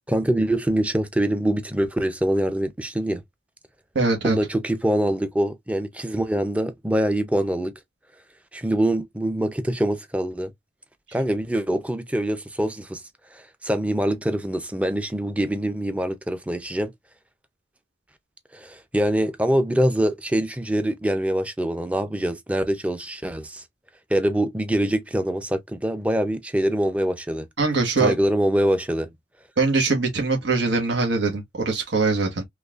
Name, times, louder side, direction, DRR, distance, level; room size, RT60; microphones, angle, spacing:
voice 1, 0.1-3.2 4.2-7.7 8.5-10.5 11.1-13.0 13.3-16.9 18.5-23.6 24.1-27.5 28.0-29.1, right 1 dB, 5° right, 0.4 m, -24 dB
voice 2, 3.9-4.4 27.6-28.1 29.6-32.4, right 3 dB, 85° right, 1.2 m, -22 dB
4.0 x 3.1 x 2.4 m
head